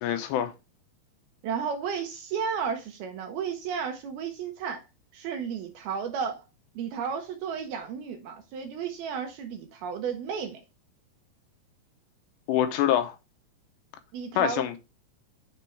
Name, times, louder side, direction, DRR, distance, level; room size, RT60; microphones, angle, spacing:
voice 1, 0.0-0.5 12.5-13.2 14.4-14.8, left 11 dB, 80° left, 2.8 m, -25 dB
voice 2, 1.4-4.8 5.1-6.4 6.8-10.6 14.1-14.7, right 6 dB, 75° right, 2.4 m, -33 dB
6.9 x 6.0 x 3.2 m
omnidirectional pair, 5.1 m